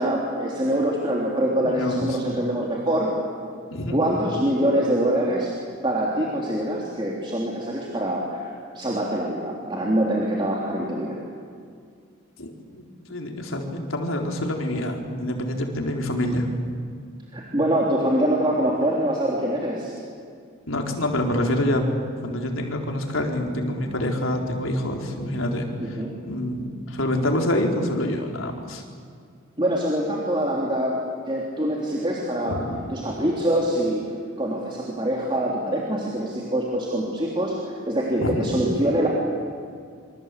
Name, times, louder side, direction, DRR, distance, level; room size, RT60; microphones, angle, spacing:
voice 1, 0.0-3.1 3.9-5.5 5.8-8.5 8.7-11.2 17.3-19.9 25.8-26.2 29.6-32.6 32.9-34.0 34.4-39.1, right 1 dB, 25° right, -3 dB, 3.2 m, -24 dB
voice 2, 1.6-2.2 3.7-4.0 12.4-12.8 13.1-16.5 20.7-21.8 22.2-26.0 26.3-28.8 32.5-32.8 38.2-38.5, left 1 dB, 85° left, 2 dB, 4.2 m, -26 dB
27.5 x 25.0 x 8.5 m, 2.2 s
head